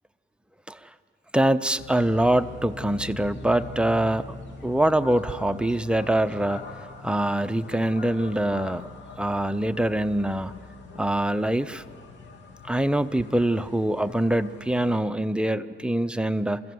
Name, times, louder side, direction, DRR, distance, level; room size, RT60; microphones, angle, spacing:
voice 1, 1.3-4.4 4.6-6.6 7.0-8.9 9.2-10.5 10.9-11.8 12.6-16.6, right 1 dB, 5° right, 10 dB, 0.7 m, -24 dB
sound 1, 1.8-15.0, left 3 dB, 65° left, 3.1 m, -43 dB
29.0 x 15.0 x 7.8 m, 2.3 s
cardioid pair, 90°, 20 cm